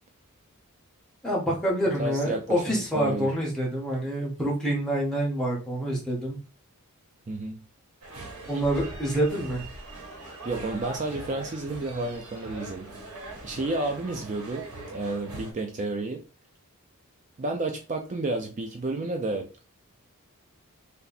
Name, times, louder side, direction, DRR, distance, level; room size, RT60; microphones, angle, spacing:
voice 1, 1.2-6.4 8.5-9.6, right 1 dB, 5° left, -3 dB, 1.3 m, -27 dB
voice 2, 2.0-3.3 7.3-7.6 10.4-12.9 13.4-14.7 14.9-16.2 17.4-19.6, right 2 dB, 35° right, 4 dB, 0.4 m, -31 dB
sound 1, 8.0-15.5, right 2 dB, 90° right, 1.4 m, -41 dB
3.2 x 2.8 x 4.0 m, 0.34 s
head